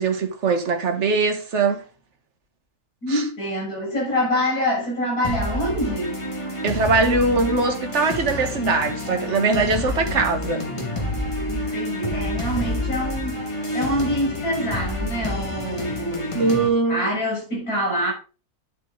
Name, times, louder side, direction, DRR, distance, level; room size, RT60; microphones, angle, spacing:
voice 1, 0.0-1.8 3.1-3.2 6.6-10.7 16.3-17.0, right 3 dB, 50° right, 1.7 m, -21 dB
voice 2, 3.0-6.2 11.5-13.4 13.7-16.3 16.9-18.1, equal, 75° left, 7.1 m, -25 dB
sound 1, 5.2-16.7, left 1 dB, 20° left, 2.2 m, -28 dB
10.0 x 8.3 x 3.9 m
omnidirectional pair, 1.6 m